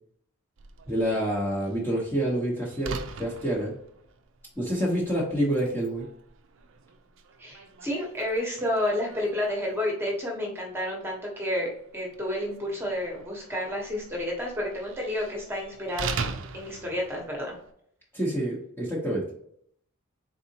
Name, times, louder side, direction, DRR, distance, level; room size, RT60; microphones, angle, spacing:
Slam, 0.6-17.7, right 5 dB, 60° right, 0.5 m, -42 dB
voice 1, 0.9-2.9 3.2-3.7 4.6-6.1 18.1-19.2, right 1 dB, 10° left, -5 dB, 0.9 m, -27 dB
voice 2, 7.4-16.3 16.5-17.6, left 1 dB, 10° right, -2 dB, 1.1 m, -30 dB
4.1 x 3.8 x 2.8 m, 0.68 s
head